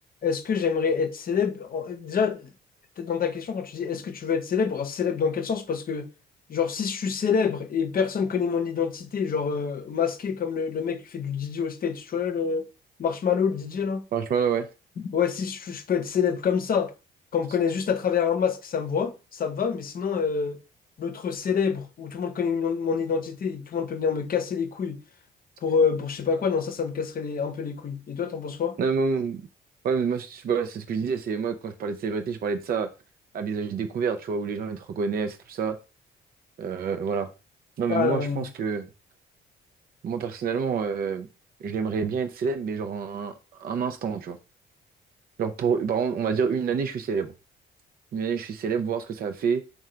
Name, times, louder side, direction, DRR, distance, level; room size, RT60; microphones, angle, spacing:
voice 1, 0.2-2.5 3.0-6.1 6.5-12.6 13.0-14.0 15.0-16.9 17.3-20.6 21.0-25.0 25.6-28.7 37.9-38.5, left 6 dB, 45° left, 0.7 m, -27 dB
voice 2, 14.1-14.7 28.8-29.4 29.8-32.9 33.3-35.8 36.6-37.3 37.8-38.8 40.0-41.3 41.6-44.4 45.4-47.3 48.1-49.6, right 6 dB, 50° right, 0.5 m, -27 dB
3.7 x 2.3 x 4.3 m
cardioid pair, 90°, 20 cm